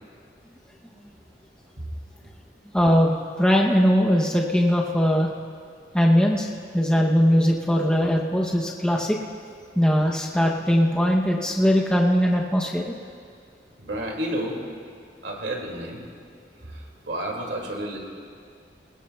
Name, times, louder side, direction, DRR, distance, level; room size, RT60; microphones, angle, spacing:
voice 1, 2.7-5.3 5.9-6.5 6.7-9.2 9.8-12.9, equal, 5° left, -1 dB, 0.7 m, -20 dB
voice 2, 13.8-14.6 15.2-16.0 16.6-18.0, right 1 dB, 75° right, 0 dB, 2.3 m, -31 dB
20.0 x 20.0 x 2.3 m, 2.1 s
head